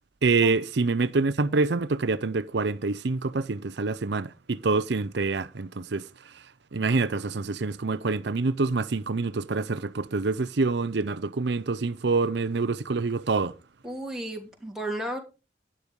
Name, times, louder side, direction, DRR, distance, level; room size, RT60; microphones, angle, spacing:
voice 1, 0.2-6.5 6.7-13.5, right 3 dB, 65° right, 0.6 m, -26 dB
voice 2, 13.8-15.2, right 1 dB, ahead, 2.7 m, -33 dB
12.0 x 9.9 x 5.3 m
head